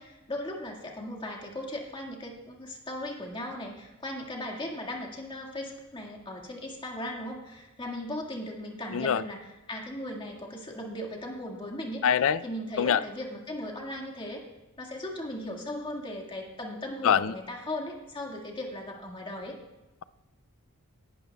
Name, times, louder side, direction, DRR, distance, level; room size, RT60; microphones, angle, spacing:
voice 1, 0.0-14.4 14.8-19.6, left 1 dB, 25° left, 0 dB, 1.8 m, -37 dB
voice 2, 8.9-9.2 12.0-12.4 12.8-13.0 17.0-17.3, left 8 dB, 65° left, 17 dB, 0.4 m, -23 dB
18.0 x 12.0 x 2.3 m, 1.1 s
head